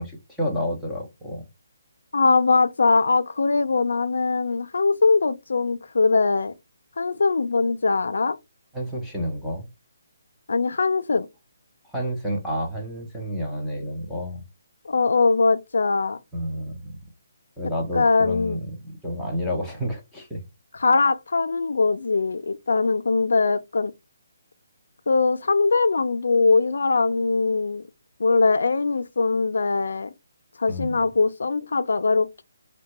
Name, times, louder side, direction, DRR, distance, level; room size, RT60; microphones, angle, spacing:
voice 1, 0.0-1.4 8.7-9.7 11.9-14.4 16.3-17.0 17.6-20.4 30.7-31.0, equal, ahead, 0.5 m, -30 dB
voice 2, 2.1-6.5 7.0-8.4 10.5-11.3 14.9-16.2 17.9-18.6 20.8-23.9 25.1-27.8 28.2-30.1 30.6-32.4, left 4 dB, 75° left, 0.3 m, -21 dB
3.5 x 2.2 x 2.9 m
hypercardioid pair, 175°, 0 cm